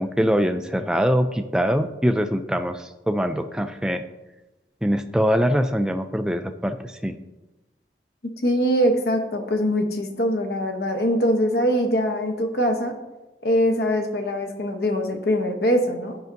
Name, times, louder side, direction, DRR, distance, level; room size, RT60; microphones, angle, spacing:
voice 1, 0.0-4.0 4.8-6.8 7.0-7.1, equal, 5° right, 7 dB, 0.3 m, -23 dB
voice 2, 8.2-12.9 13.4-16.2, equal, 60° left, 5 dB, 0.9 m, -22 dB
12.0 x 5.4 x 2.6 m, 1.1 s
head